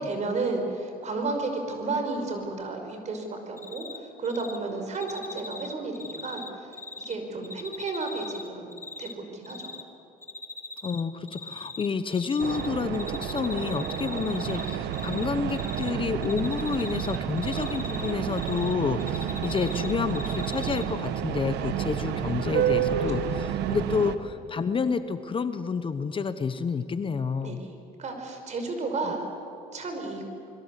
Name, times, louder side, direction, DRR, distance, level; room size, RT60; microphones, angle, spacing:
voice 1, 0.0-6.4 7.0-9.7 20.7-20.9 27.4-29.3 29.7-30.2, right 3 dB, 45° right, 5 dB, 5.4 m, -32 dB
Cricket, 3.6-4.0 4.2-4.6 4.9-7.1 7.4-9.1 9.4-9.8 10.2-11.0 11.3-12.7 12.9-15.2 15.5-15.9 16.2-18.7 19.0-20.8, left 3 dB, 15° left, 1.9 m, -40 dB
voice 2, 10.8-27.6 29.0-29.1, left 5 dB, 30° left, 11 dB, 1.0 m, -29 dB
sound 1, 12.4-24.2, right 9 dB, 85° right, 1.4 m, -30 dB
26.5 x 22.0 x 8.4 m, 2.9 s
cardioid pair, 110°, 17 cm